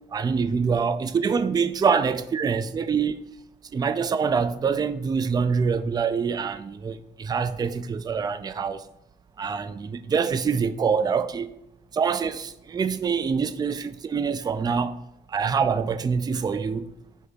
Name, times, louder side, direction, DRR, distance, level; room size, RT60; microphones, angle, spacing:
voice 1, 0.1-3.1 3.7-8.8 9.4-11.5 11.9-15.0 15.3-16.9, right 6 dB, 20° right, 0.4 m, -25 dB
14.5 x 5.0 x 2.4 m
cardioid pair, 135°, 18 cm